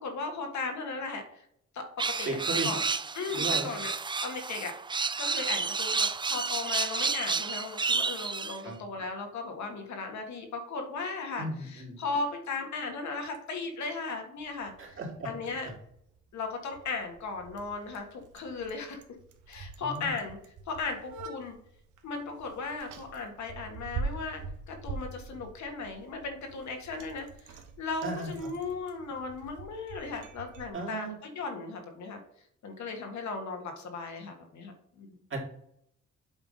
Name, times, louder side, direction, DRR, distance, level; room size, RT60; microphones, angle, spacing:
voice 1, 0.0-1.4 1.7-1.8 2.2-2.4 2.6-2.8 3.1-3.9 4.2-4.7 5.2-15.0 15.2-15.7 16.3-19.0 19.5-20.4 20.7-21.6 22.0-32.2 32.6-34.7 35.0-35.1, left 4 dB, 65° left, 4 dB, 1.8 m, -36 dB
sound 1, 2.0-8.6, right 4 dB, 15° right, 0.4 m, -30 dB
voice 2, 2.2-2.7 3.3-3.7 8.6-8.8 11.4-12.0 14.8-15.3 19.8-20.1 28.0-28.5 30.7-31.1 35.3-35.4, right 2 dB, 40° right, 0 dB, 2.7 m, -35 dB
Bicycle, 14.4-30.7, right 4 dB, 80° right, 1.2 m, -44 dB
8.1 x 3.4 x 5.4 m, 0.71 s
cardioid pair, 90°, 30 cm